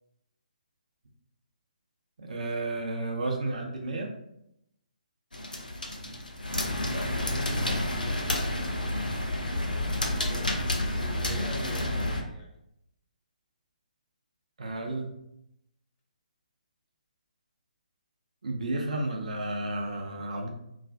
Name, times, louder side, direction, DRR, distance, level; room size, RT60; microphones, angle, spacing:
voice 1, 2.2-4.1 6.0-6.1 14.6-15.1 18.4-20.5, right 2 dB, 60° right, 1 dB, 0.4 m, -32 dB
sound 1, 5.3-12.2, left 1 dB, 85° left, 0.5 m, -30 dB
voice 2, 6.8-9.1 10.0-12.6, left 1 dB, 20° left, -3 dB, 0.4 m, -43 dB
2.4 x 2.3 x 2.2 m, 0.79 s
figure-of-eight pair, 140°, 4 cm